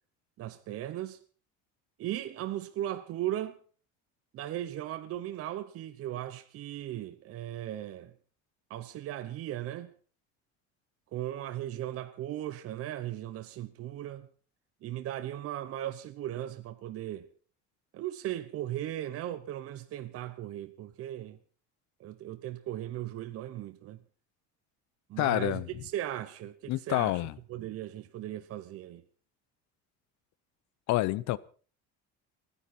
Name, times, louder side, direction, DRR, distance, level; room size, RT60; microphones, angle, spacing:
voice 1, 0.4-1.2 2.0-3.6 4.3-8.1 8.7-9.9 11.1-14.3 14.8-17.3 17.9-21.4 22.0-24.0 25.1-27.2 27.5-29.0, right 13 dB, 50° right, 1.0 m, -37 dB
voice 2, 25.2-25.7 26.7-27.3 30.9-31.4, left 17 dB, 65° left, 0.8 m, -28 dB
29.5 x 9.9 x 4.3 m
cardioid pair, 160°, 30 cm